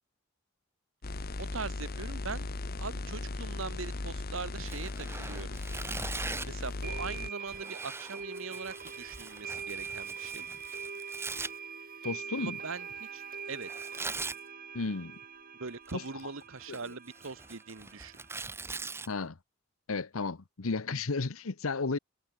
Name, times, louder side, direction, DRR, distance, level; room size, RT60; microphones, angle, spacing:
sound 1, 1.0-7.3, left 2 dB, 50° left, 1.0 m, -37 dB
voice 1, 1.4-2.5 2.8-5.5 6.4-10.5 12.4-13.7 15.6-18.2, right 4 dB, 70° right, 1.3 m, -41 dB
Tearing, 4.6-6.6 7.5-11.5 13.6-14.4 15.7-16.2 16.6-19.1, right 3 dB, 10° right, 0.8 m, -41 dB
sound 2, 5.9-6.0 6.8-18.4, right 6 dB, 45° right, 6.2 m, -43 dB
voice 2, 12.0-12.6 14.7-15.2 15.9-16.0 16.7-16.8 19.1-19.4 19.9-22.0, left 3 dB, 80° left, 1.0 m, -33 dB
head